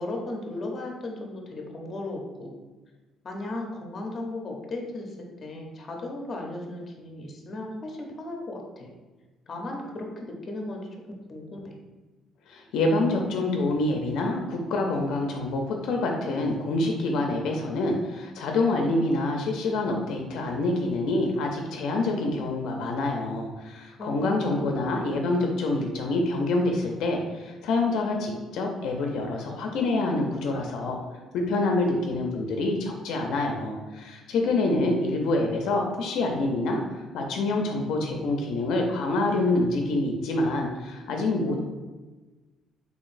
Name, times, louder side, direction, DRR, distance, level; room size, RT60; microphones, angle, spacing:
voice 1, 0.0-2.5 3.2-8.9 9.5-10.9 11.3-11.8 24.0-24.8, left 2 dB, 35° left, 1 dB, 0.7 m, -36 dB
voice 2, 12.5-31.0 31.3-41.6, left 2 dB, 75° left, 2 dB, 0.5 m, -26 dB
3.8 x 3.4 x 2.5 m, 1.2 s
cardioid pair, 130°, 0 cm